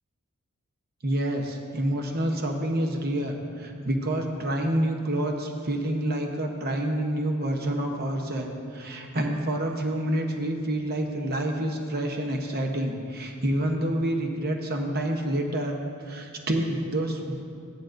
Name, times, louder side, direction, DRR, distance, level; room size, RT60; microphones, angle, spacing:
voice 1, 1.0-17.4, right 1 dB, 45° right, 2 dB, 0.9 m, -28 dB
15.5 x 10.0 x 2.6 m, 2.4 s
head